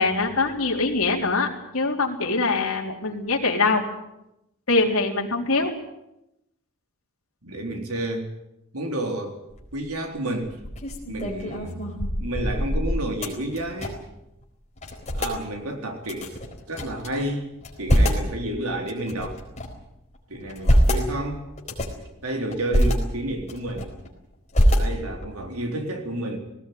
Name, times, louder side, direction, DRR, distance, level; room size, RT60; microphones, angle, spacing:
voice 1, 0.0-1.5 1.7-3.8 4.7-5.7, left 3 dB, 70° left, 0 dB, 3.9 m, -23 dB
voice 2, 7.4-8.3 8.7-9.4 9.7-10.6 11.1-11.8 12.2-14.0 15.1-16.4 16.7-17.5 17.8-19.4 20.3-21.5 22.2-24.0 24.7-26.4, right 1 dB, 85° right, 4 dB, 3.9 m, -30 dB
sound 1, 9.5-9.9 10.4-14.2 14.4-14.5 14.8-15.4 16.1-17.1 17.5-18.3 18.9-19.8 20.3-21.1 21.6-22.0 22.5-23.0 23.4-24.1 24.5-25.3, equal, 30° left, 4.4 m, -24 dB
18.5 x 18.0 x 9.5 m, 0.87 s
head